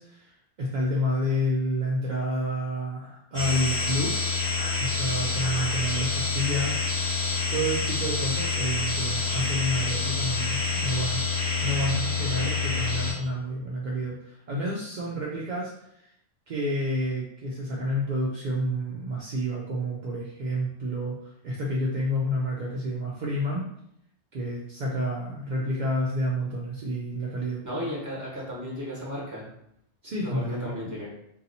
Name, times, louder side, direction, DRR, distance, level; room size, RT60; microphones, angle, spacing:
voice 1, 0.0-4.2 4.8-7.1 7.5-11.2 11.6-16.1 16.5-23.6 24.3-27.6 30.0-30.7, equal, 60° right, -4 dB, 0.5 m, -29 dB
sound 1, 3.3-13.1, left 4 dB, 15° left, 1.4 m, -27 dB
voice 2, 27.6-29.5 30.2-31.1, equal, 15° right, -6 dB, 1.1 m, -34 dB
2.7 x 2.3 x 4.0 m, 0.76 s
omnidirectional pair, 1.3 m